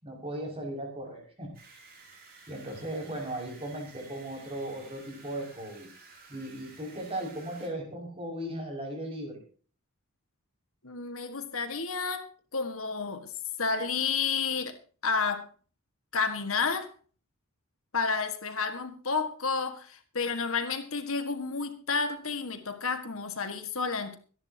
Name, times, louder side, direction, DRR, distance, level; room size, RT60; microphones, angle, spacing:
voice 1, 0.0-1.5 2.5-9.4, right 1 dB, 25° right, 6.2 m, -37 dB
sound 1, 1.5-7.7, right 4 dB, 45° right, 5.3 m, -53 dB
voice 2, 10.8-12.3 12.5-13.3 13.6-14.8 15.0-15.5 16.1-16.9 17.9-24.2, left 4 dB, 65° left, 1.7 m, -31 dB
25.0 x 10.5 x 2.9 m
head